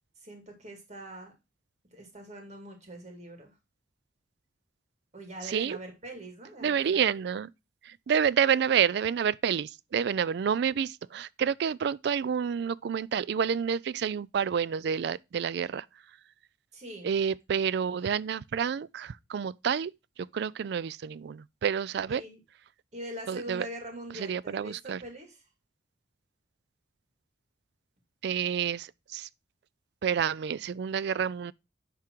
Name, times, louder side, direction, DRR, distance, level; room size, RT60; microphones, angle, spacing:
voice 1, 0.2-1.3 1.9-3.5 5.1-7.1 16.7-17.1 22.1-22.4 22.9-25.4, right 1 dB, 40° right, 2.2 m, -43 dB
voice 2, 5.5-5.8 6.6-7.5 7.9-15.9 17.0-19.9 20.3-22.2 23.3-23.7 24.1-25.0 28.2-29.3 30.0-31.5, right 7 dB, 65° right, 0.3 m, -29 dB
10.5 x 3.7 x 4.5 m
head